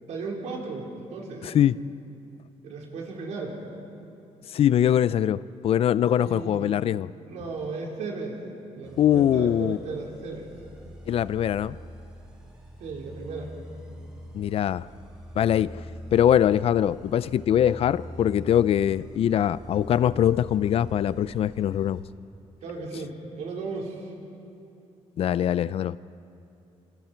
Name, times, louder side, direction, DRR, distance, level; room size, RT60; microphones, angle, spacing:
voice 1, 0.1-1.5 2.6-3.6 6.1-6.7 7.2-8.4 8.7-10.5 12.8-13.5 22.6-24.0, right 4 dB, 80° right, -1 dB, 4.4 m, -35 dB
voice 2, 1.4-1.8 4.5-7.1 9.0-9.8 11.1-11.8 14.3-14.9 15.4-15.8 16.1-22.0 25.2-26.0, left 10 dB, 55° left, 17 dB, 0.5 m, -22 dB
sound 1, 8.8-22.0, equal, 10° right, 7.3 m, -43 dB
27.5 x 27.0 x 4.5 m, 2.8 s
cardioid pair, 130°, 12 cm